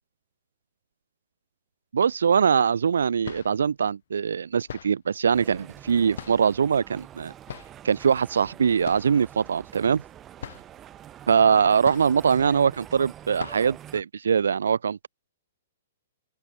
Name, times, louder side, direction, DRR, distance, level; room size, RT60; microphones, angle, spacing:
voice 1, 1.9-7.3 7.8-10.0 11.3-15.1, right 6 dB, 85° right, 0.6 m, -22 dB
sound 1, 2.3-2.4 3.0-3.7 4.7-5.1 6.1-6.7 7.5-7.9 8.8-9.3 9.5-9.6 10.0-10.1 10.4-10.8 11.8-12.4 12.8-12.9 13.4-13.8, left 9 dB, 70° left, 1.1 m, -40 dB
sound 2, 5.3-14.0, right 11 dB, 20° right, 7.1 m, -46 dB
open air
hypercardioid pair, 140°, 0 cm